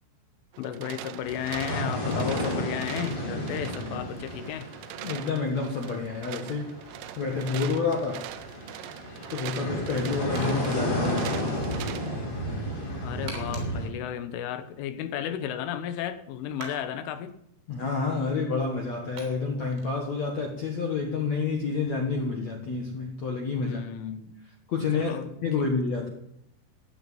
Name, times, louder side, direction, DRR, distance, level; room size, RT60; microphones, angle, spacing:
sound 1, 0.5-12.2, right 13 dB, 80° right, 3.4 m, -42 dB
voice 1, 0.6-4.7 13.0-17.4 23.6-24.4 24.9-25.2 25.6-25.7, left 10 dB, 75° left, 9 dB, 3.6 m, -33 dB
sound 2, 1.2-13.9, equal, 25° left, 5.3 m, -33 dB
voice 2, 5.0-6.8 7.2-8.3 9.3-11.3 17.7-23.8 24.7-26.1, left 4 dB, 60° left, 1 dB, 1.9 m, -29 dB
sound 3, 10.3-23.8, right 4 dB, 65° right, 5.5 m, -50 dB
15.0 x 8.7 x 9.2 m, 0.78 s
omnidirectional pair, 5.9 m